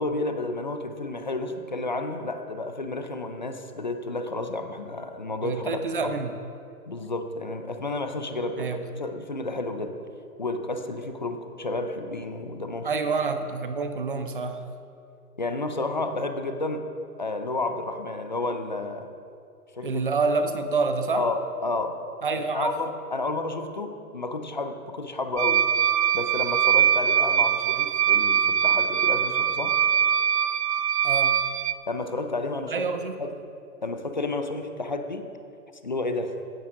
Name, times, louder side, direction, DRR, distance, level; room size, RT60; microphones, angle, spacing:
voice 1, 0.0-6.1 6.9-9.9 10.4-12.9 15.4-16.8 17.2-19.1 19.8-20.0 21.1-22.0 22.3-25.7 26.1-29.8 31.9-32.9 33.2-33.3 33.8-35.2 35.8-36.3, left 2 dB, 30° left, 7 dB, 0.5 m, -31 dB
voice 2, 5.4-6.4 8.6-8.8 12.8-14.6 19.8-21.3 22.2-22.7 31.0-31.4 32.7-33.3, right 4 dB, 35° right, 8 dB, 0.7 m, -27 dB
sound 1, 25.4-31.7, right 9 dB, 85° right, 0.6 m, -22 dB
16.0 x 10.5 x 3.7 m, 2.5 s
hypercardioid pair, 170°, 46 cm